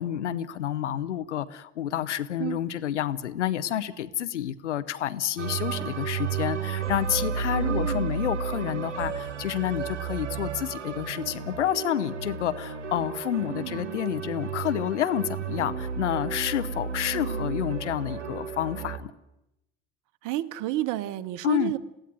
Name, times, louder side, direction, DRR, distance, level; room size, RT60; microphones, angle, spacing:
voice 1, 0.0-19.1 21.4-21.7, left 11 dB, 85° left, 14 dB, 0.9 m, -29 dB
sound 1, 5.4-19.0, right 6 dB, 90° right, 1.3 m, -32 dB
voice 2, 7.5-8.3 13.5-14.0 17.1-17.5 20.2-21.8, right 15 dB, 60° right, 14 dB, 1.2 m, -32 dB
21.5 x 16.5 x 9.3 m, 0.89 s
hypercardioid pair, 60°, 34 cm